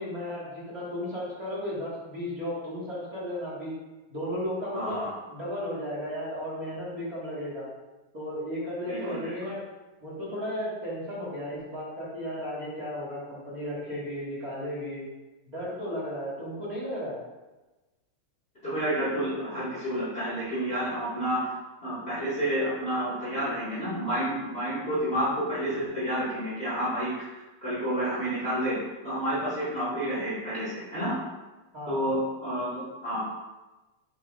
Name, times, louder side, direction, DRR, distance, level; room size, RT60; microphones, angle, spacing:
voice 1, 0.0-3.8 4.1-5.0 5.3-7.6 8.1-9.6 10.0-15.0 15.5-17.2 31.7-32.1, equal, 30° right, -10 dB, 2.3 m, -34 dB
voice 2, 4.7-5.1 8.9-9.3 18.6-21.5 21.8-27.2 27.6-28.8 29.0-31.2 31.9-33.2, equal, 25° left, -10 dB, 2.0 m, -30 dB
7.5 x 6.0 x 2.6 m, 1.1 s
omnidirectional pair, 3.3 m